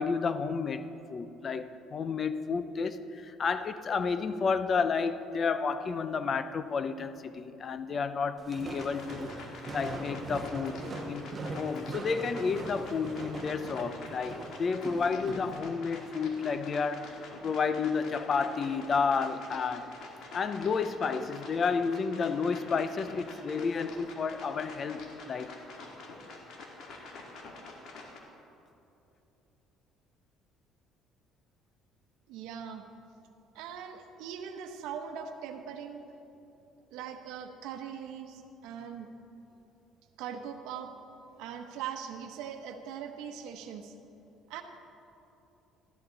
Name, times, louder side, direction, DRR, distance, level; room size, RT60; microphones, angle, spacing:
voice 1, 0.0-9.3 9.7-10.8 11.1-11.3 11.5-17.1 17.4-19.9 20.3-25.6, left 5 dB, 35° left, 12 dB, 0.5 m, -31 dB
Walk footsteps, 8.4-15.6, right 2 dB, 25° right, 1.2 m, -40 dB
sound 1, 8.7-28.2, left 3 dB, 60° left, 1.7 m, -47 dB
voice 2, 32.3-32.8 33.5-36.0 36.9-39.1 40.2-40.9 41.4-43.9 44.5-44.6, right 8 dB, 80° right, 6 dB, 0.9 m, -41 dB
13.0 x 11.0 x 3.9 m, 2.9 s
cardioid pair, 130°, 0 cm